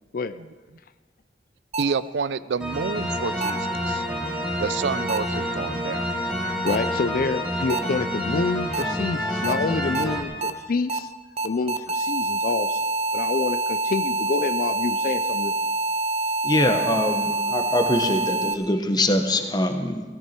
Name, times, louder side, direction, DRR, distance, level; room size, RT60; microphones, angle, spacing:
sound 1, 1.7-1.8 3.4-3.5 5.1-5.2 6.7-6.8 7.7-7.8 8.7-8.8 9.4-9.5 9.9-10.0 10.4-10.5 10.9-11.0 11.4-18.5, right 2 dB, 35° right, 0.7 m, -26 dB
voice 1, 1.8-4.0 4.6-6.1, right 5 dB, 75° right, 16 dB, 0.4 m, -29 dB
sound 2, 2.6-10.2, equal, 5° right, 2.1 m, -28 dB
voice 2, 6.6-11.1 11.4-12.9 13.1-15.5, left 4 dB, 55° left, 13 dB, 0.4 m, -27 dB
voice 3, 16.4-20.0, left 1 dB, 25° left, 6 dB, 1.1 m, -23 dB
17.0 x 13.5 x 4.4 m, 1.4 s
head